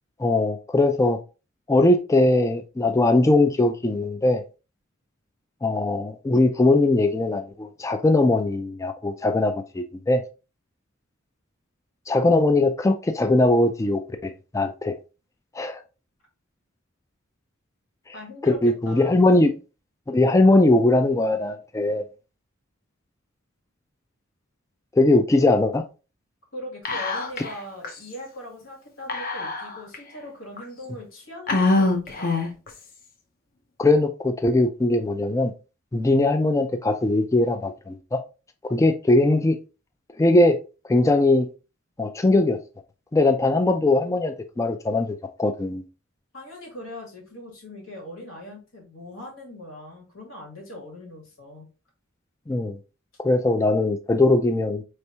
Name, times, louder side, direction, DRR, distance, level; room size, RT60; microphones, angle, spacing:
voice 1, 0.2-1.2 1.7-4.4 5.6-10.2 12.1-15.0 15.5-15.8 18.4-19.5 20.1-22.0 25.0-25.8 33.8-35.5 35.9-38.2 38.7-39.6 40.2-40.6 40.9-41.5 42.0-42.6 43.1-45.8 52.5-52.8 53.2-54.8, left 2 dB, 15° left, 0.3 m, -20 dB
voice 2, 18.1-19.5 26.5-32.4 46.3-51.7, left 1 dB, 85° left, 2.1 m, -40 dB
Whispering, 26.8-27.6 27.8-27.9 29.1-29.9 30.6-30.7 31.5-32.7, left 2 dB, 45° left, 0.7 m, -24 dB
4.3 x 3.3 x 2.8 m
head